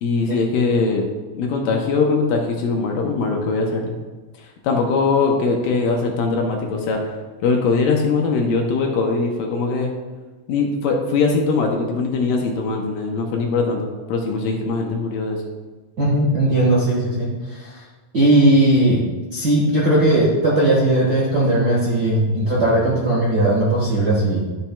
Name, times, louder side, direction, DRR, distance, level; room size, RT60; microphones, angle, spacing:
voice 1, 0.0-1.1 1.3-4.0 4.6-9.9 10.5-15.4, left 4 dB, 75° left, 1 dB, 2.3 m, -21 dB
voice 2, 16.0-17.3 18.1-19.0 19.3-24.4, right 1 dB, 50° right, -7 dB, 1.1 m, -17 dB
11.5 x 7.2 x 2.3 m, 1.3 s
omnidirectional pair, 4.3 m